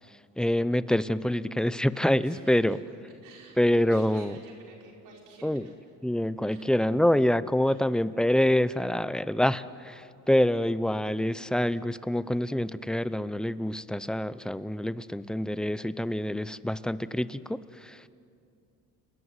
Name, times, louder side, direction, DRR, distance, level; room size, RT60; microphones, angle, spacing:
voice 1, 0.1-2.8 3.6-4.4 5.4-5.7 6.0-18.1, left 1 dB, ahead, 15 dB, 0.7 m, -26 dB
voice 2, 2.2-2.8 3.2-5.7 6.5-6.7 7.0-7.1 7.6-7.9, right 4 dB, 65° right, 0 dB, 5.0 m, -52 dB
30.0 x 20.5 x 9.6 m, 2.5 s
cardioid pair, 105°, 33 cm